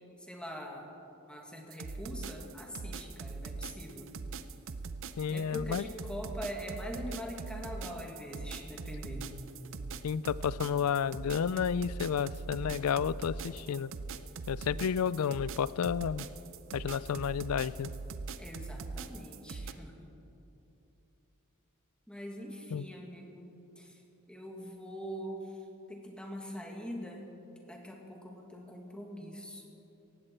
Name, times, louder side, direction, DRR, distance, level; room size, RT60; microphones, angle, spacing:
voice 1, 0.2-0.9 1.2-4.1 5.3-9.4 18.4-20.1 22.1-24.0 24.3-25.6 25.9-27.3 27.7-29.6, equal, 5° left, 0 dB, 1.8 m, -43 dB
sound 1, 1.7-19.7, right 4 dB, 60° right, 0.6 m, -41 dB
voice 2, 5.2-5.8 10.0-13.9 14.5-16.3 16.7-17.9 22.7-22.9, left 7 dB, 70° left, 19 dB, 0.4 m, -31 dB
18.0 x 15.5 x 4.5 m, 3.0 s
head